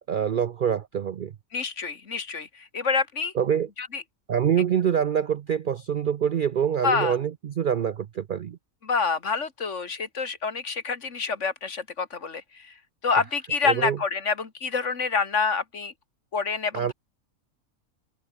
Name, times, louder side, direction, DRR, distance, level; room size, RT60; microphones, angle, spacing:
voice 1, 0.1-1.3 3.3-3.7 4.3-8.6 13.6-14.0 16.7-16.9, right 8 dB, 70° right, 0.5 m, -25 dB
voice 2, 1.5-3.3 3.8-4.0 6.8-7.2 8.8-12.7 13.0-15.9 16.3-16.9, left 5 dB, 55° left, 2.1 m, -27 dB
omnidirectional pair, 1.5 m